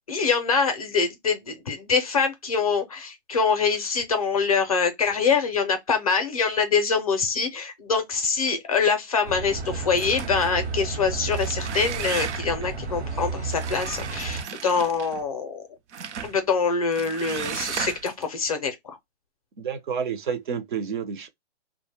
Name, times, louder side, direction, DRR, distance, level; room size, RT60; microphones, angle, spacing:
voice 1, 0.1-15.6 16.2-19.0, left 5 dB, 35° left, 0.4 m, -24 dB
sound 1, 9.2-14.4, right 4 dB, 65° right, 1.0 m, -32 dB
sound 2, 10.0-10.6 11.2-12.7 13.5-15.2 15.9-16.4 16.9-18.2, right 7 dB, 85° right, 0.7 m, -34 dB
voice 2, 19.6-21.3, right 7 dB, 45° right, 0.5 m, -29 dB
2.5 x 2.1 x 3.2 m
hypercardioid pair, 170°, 34 cm